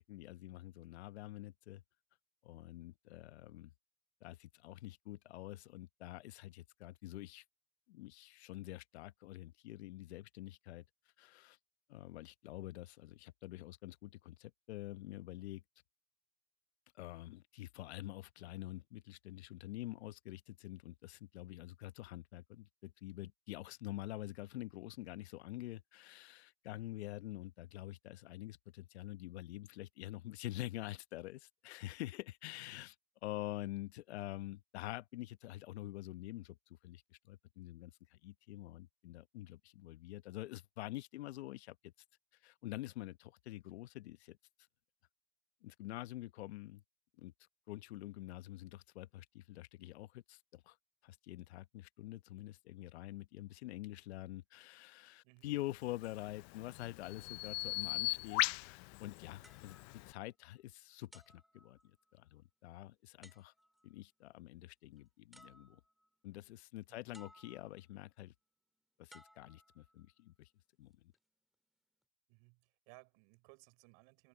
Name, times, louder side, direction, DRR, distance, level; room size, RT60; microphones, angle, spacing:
voice 1, 0.0-1.8 2.4-3.7 4.2-7.4 7.9-10.8 11.2-11.6 11.9-15.6 16.9-33.0 33.2-41.9 42.4-44.4 45.6-46.8 47.2-47.3 47.7-50.8 51.0-61.8 62.1-63.5 63.8-65.8 66.2-68.3 69.0-70.5 70.8-70.9, left 16 dB, 80° left, 1.1 m, -47 dB
Bird vocalization bird call bird song, 55.9-60.1, left 26 dB, 55° left, 0.7 m, -39 dB
sound 1, 59.4-60.6 61.1-62.3 63.2-63.9 65.0-65.1 65.3-66.1 67.1-67.9 69.1-70.2 70.9-71.2, equal, ahead, 3.0 m, -63 dB
voice 2, 72.3-74.3, right 33 dB, 60° right, 5.9 m, -62 dB
hypercardioid pair, 110°, 32 cm